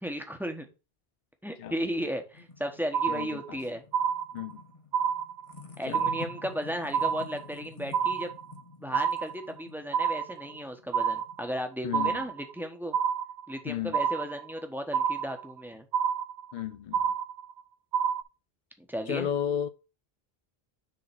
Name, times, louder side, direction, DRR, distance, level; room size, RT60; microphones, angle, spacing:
voice 1, 0.0-0.7 1.4-3.8 5.8-8.3 8.8-13.0 13.5-15.8 18.8-19.3, equal, ahead, 1.2 m, -35 dB
sound 1, 1.7-11.8, left 3 dB, 35° left, 1.4 m, -49 dB
sound 2, 2.9-3.6 3.9-4.6 4.9-5.6 5.9-6.6 6.9-7.6 7.9-8.6 8.9-9.6 9.9-10.6 10.9-11.6 11.9-12.6 12.9-13.6 13.9-14.6 14.9-15.6 15.9-16.6 16.9-17.6 17.9-18.2, right 8 dB, 90° right, 1.0 m, -28 dB
voice 2, 3.1-3.6 4.3-4.6 5.9-6.1 11.8-12.2 13.7-14.0 16.5-17.0 19.1-19.7, left 9 dB, 60° left, 0.6 m, -33 dB
6.6 x 3.9 x 6.0 m
omnidirectional pair, 1.1 m